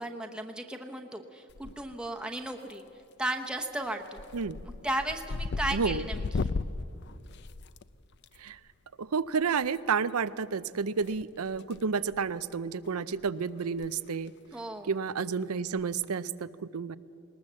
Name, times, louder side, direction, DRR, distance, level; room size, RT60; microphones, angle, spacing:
voice 1, 0.0-2.8 3.2-4.2 4.8-6.5 14.5-14.9, right 1 dB, 5° right, 3 dB, 0.9 m, -35 dB
sound 1, 1.5-2.1 2.4-2.9 3.3-3.5 3.9-8.3 9.6-9.8 11.0-11.8 12.1-12.3 12.8-12.9 13.2-13.3 13.7-13.9 14.1-14.2 15.8-16.0, left 3 dB, 50° left, 0.5 m, -36 dB
voice 2, 5.7-6.1 8.4-8.6 9.0-14.3 14.9-17.0, right 5 dB, 85° right, 15 dB, 0.6 m, -31 dB
20.0 x 19.5 x 7.5 m, 2.5 s
head